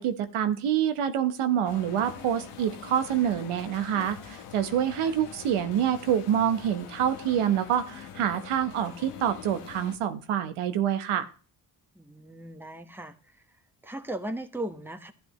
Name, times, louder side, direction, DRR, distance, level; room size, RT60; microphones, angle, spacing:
voice 1, 0.0-11.3, right 9 dB, 75° right, 9 dB, 1.1 m, -27 dB
sound 1, 1.6-10.0, left 8 dB, 85° left, 1.4 m, -44 dB
voice 2, 11.9-13.1 13.8-15.1, right 1 dB, 5° right, 5 dB, 1.3 m, -37 dB
12.5 x 10.0 x 3.2 m, 0.39 s
cardioid pair, 65°, 50 cm